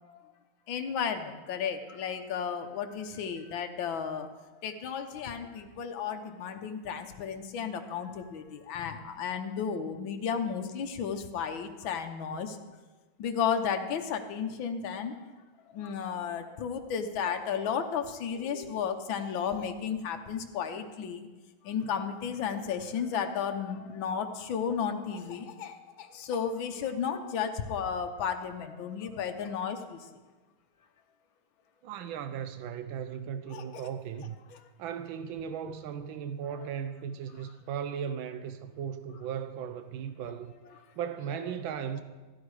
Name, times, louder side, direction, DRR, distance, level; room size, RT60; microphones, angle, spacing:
voice 1, 0.7-4.3 4.6-12.6 13.2-15.2 15.7-21.3 21.6-30.0 33.5-33.6 41.3-41.4 41.8-41.9, left 7 dB, 80° left, 1.7 m, -33 dB
voice 2, 31.8-34.4 34.8-40.5 41.0-42.0, right 8 dB, 85° right, 1.5 m, -37 dB
15.0 x 10.5 x 4.8 m
omnidirectional pair, 2.1 m